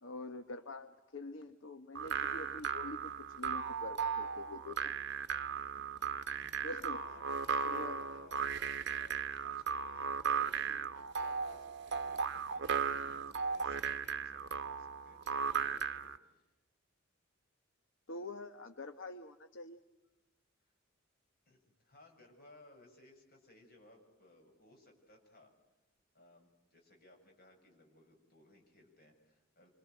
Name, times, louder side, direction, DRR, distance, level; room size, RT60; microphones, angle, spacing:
voice 1, 0.0-5.0 6.6-7.0 7.6-8.0 18.1-19.8, left 2 dB, 65° left, 8 dB, 1.2 m, -46 dB
sound 1, 1.9-16.2, right 6 dB, 55° right, 0.9 m, -36 dB
voice 2, 5.3-16.5 21.5-25.5 26.1-29.7, left 1 dB, 45° left, 2 dB, 6.8 m, -63 dB
27.0 x 25.5 x 7.9 m, 1.0 s
head